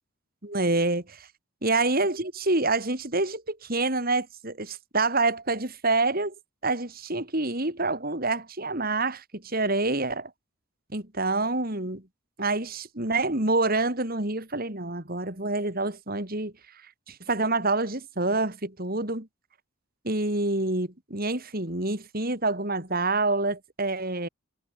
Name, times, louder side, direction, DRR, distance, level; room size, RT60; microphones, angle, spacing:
voice 1, 0.4-1.3 1.6-6.3 6.6-10.3 10.9-12.0 12.4-16.5 17.1-19.3 20.0-24.3, right 2 dB, 45° right, 3.6 m, -27 dB
head